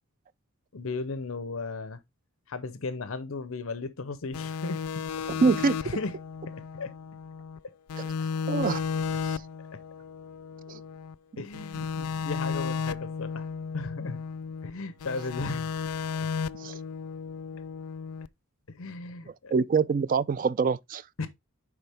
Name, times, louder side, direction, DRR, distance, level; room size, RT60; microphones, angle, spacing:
voice 1, 0.7-2.0 2.5-4.8 5.5-6.1 6.5-6.9 9.7-9.8 11.4-13.4 13.7-14.2 14.6-15.7 18.7-19.5 21.2-21.3, left 3 dB, 65° left, 0.7 m, -36 dB
sound 1, 4.3-7.6 7.9-11.1 11.5-14.7 15.0-18.3, left 6 dB, 90° left, 0.4 m, -34 dB
voice 2, 5.3-5.8 8.0-8.1 8.5-8.8 9.2-9.4 10.7-10.8 16.6-16.8 19.5-21.0, right 5 dB, 40° right, 0.3 m, -25 dB
9.8 x 3.7 x 3.4 m
head